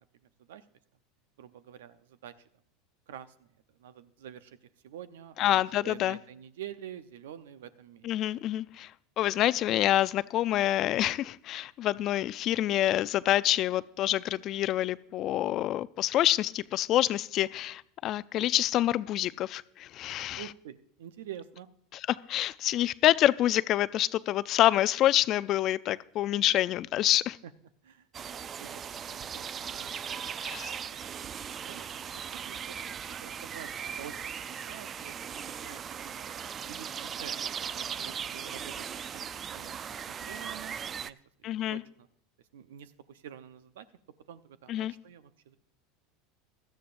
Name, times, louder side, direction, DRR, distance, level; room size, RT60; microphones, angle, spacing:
voice 1, 0.2-0.7 1.4-2.5 3.1-3.5 3.8-8.1 20.3-21.7 27.4-27.5 27.8-28.1 28.6-29.0 29.3-29.9 30.8-31.1 31.6-36.3 36.6-37.3 37.7-38.9 39.1-42.1 42.5-43.9 44.3-45.6, right 10 dB, 75° right, 13 dB, 0.7 m, -48 dB
voice 2, 5.4-6.2 8.0-8.9 9.2-20.4 22.1-27.4 30.4-30.8 41.4-41.8 44.7-44.9, left 13 dB, 50° left, 17 dB, 0.4 m, -27 dB
sound 1, 28.1-41.1, right 7 dB, 35° right, 0.4 m, -38 dB
16.5 x 13.0 x 2.6 m, 0.69 s
hypercardioid pair, 90°, 0 cm